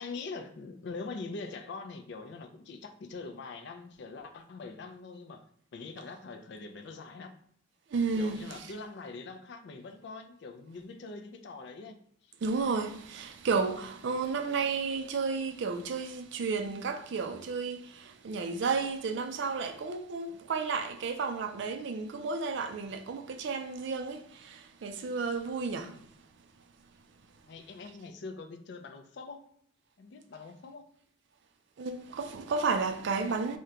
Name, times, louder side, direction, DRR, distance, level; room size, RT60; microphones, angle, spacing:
voice 1, 0.0-5.5 5.7-7.3 8.2-12.0 12.2-12.3 27.5-29.5 30.0-30.9, left 3 dB, 55° left, 0.4 m, -43 dB
voice 2, 7.9-8.7 12.4-26.1 31.8-33.6, right 4 dB, 60° right, 0.3 m, -32 dB
3.6 x 2.1 x 2.8 m
head